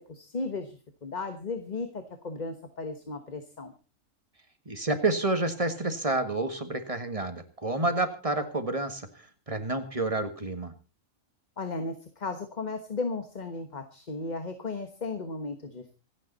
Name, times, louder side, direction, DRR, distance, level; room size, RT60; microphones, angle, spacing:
voice 1, 0.1-3.7 11.6-15.9, left 3 dB, 35° left, 8 dB, 1.4 m, -35 dB
voice 2, 4.7-10.7, right 2 dB, 25° right, 9 dB, 1.7 m, -29 dB
26.5 x 9.1 x 4.1 m, 0.33 s
omnidirectional pair, 1.3 m